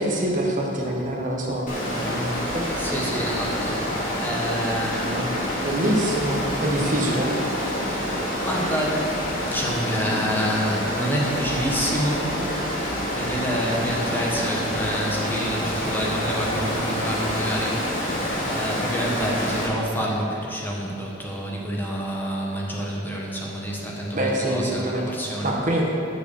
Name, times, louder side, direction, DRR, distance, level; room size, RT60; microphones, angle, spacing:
voice 1, 0.0-2.6 5.0-5.3 5.6-7.3 24.1-25.0 25.4-25.9, right 1 dB, 40° right, -1 dB, 1.2 m, -25 dB
Water, 1.7-19.7, equal, 45° left, 2.3 m, -27 dB
voice 2, 2.7-5.2 5.5-5.8 8.4-9.1 9.5-12.4 12.6-25.8, equal, 10° left, -3 dB, 1.2 m, -28 dB
9.8 x 4.8 x 7.0 m, 2.8 s
head